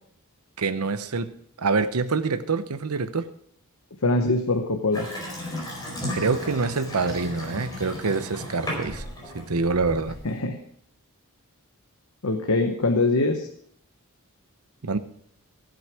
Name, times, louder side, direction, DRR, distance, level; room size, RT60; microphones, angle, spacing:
voice 1, 0.6-3.3 6.1-9.0 9.3-10.2 14.8-15.0, right 4 dB, 90° right, 12 dB, 0.8 m, -26 dB
voice 2, 4.0-5.1 10.2-10.6 12.2-13.5, left 2 dB, 70° left, 5 dB, 1.0 m, -23 dB
Water tap faucet / Sink (filling or washing) / Bathtub (filling or washing), 4.9-10.4, left 1 dB, 20° left, 4.6 m, -35 dB
16.0 x 7.8 x 4.9 m, 0.67 s
head